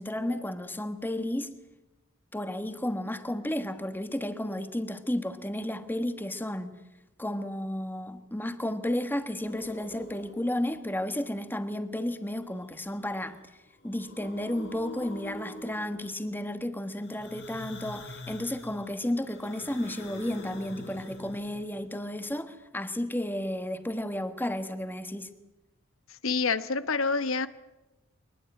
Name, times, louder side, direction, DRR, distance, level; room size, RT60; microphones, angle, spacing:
voice 1, 0.0-1.5 2.3-6.7 7.2-13.4 13.8-25.3, left 1 dB, 10° left, 1.4 m, -32 dB
sound 1, 9.4-10.7 12.4-13.3 13.7-16.2 17.0-21.9, left 1 dB, 60° left, 4.9 m, -46 dB
voice 2, 26.2-27.5, left 4 dB, 90° left, 1.1 m, -27 dB
23.0 x 20.5 x 9.0 m
head